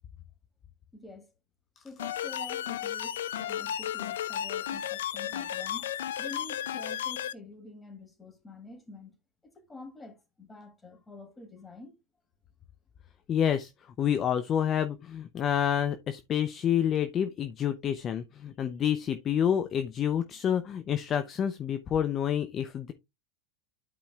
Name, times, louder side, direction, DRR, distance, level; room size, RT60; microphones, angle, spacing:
voice 1, 0.9-1.3 1.8-9.1 9.4-12.0, left 2 dB, 15° left, 3.0 m, -47 dB
sound 1, 2.0-7.3, left 10 dB, 85° left, 0.6 m, -34 dB
voice 2, 13.3-13.7 14.0-22.9, left 9 dB, 35° left, 0.7 m, -28 dB
12.0 x 5.0 x 2.4 m
hypercardioid pair, 110°, 0 cm